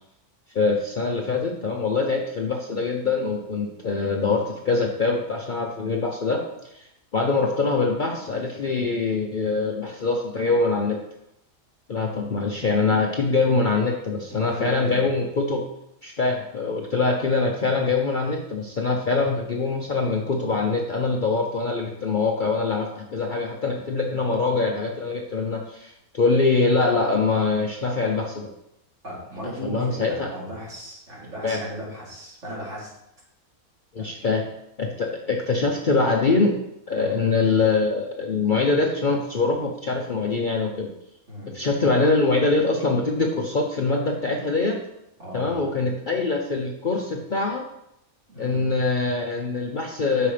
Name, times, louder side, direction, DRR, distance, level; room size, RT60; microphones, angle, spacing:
voice 1, 0.5-6.5 6.7-6.9 7.1-11.0 11.9-15.6 16.0-28.5 29.4-30.3 31.4-31.6 33.9-34.4 34.8-36.5 36.9-40.9 41.5-44.8 45.3-47.7 48.4-50.3, left 3 dB, 45° left, 1 dB, 0.7 m, -23 dB
voice 2, 14.3-15.1 29.0-32.9 34.2-34.3 36.9-37.2 41.3-41.5 45.2-45.6 48.3-48.7, equal, 55° right, -7 dB, 3.5 m, -36 dB
9.2 x 6.5 x 3.4 m, 0.82 s
omnidirectional pair, 1.5 m